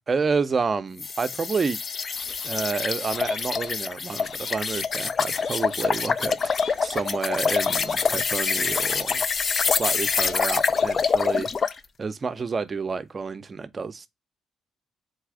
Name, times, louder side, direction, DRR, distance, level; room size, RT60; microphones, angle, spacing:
voice 1, 0.0-1.8 2.4-6.4 6.8-9.2 9.6-11.7 12.0-14.1, right 4 dB, 35° right, 0.5 m, -29 dB
sound 1, 1.0-11.8, left 5 dB, 45° left, 0.3 m, -25 dB
sound 2, 2.2-2.6 3.1-3.7 4.2-4.8 5.3-5.9 6.4-7.0 7.5-8.1 8.6-9.2 9.6-10.3 10.7-10.9, left 5 dB, 65° left, 0.8 m, -42 dB
4.1 x 2.4 x 4.7 m
cardioid pair, 90°, 0 cm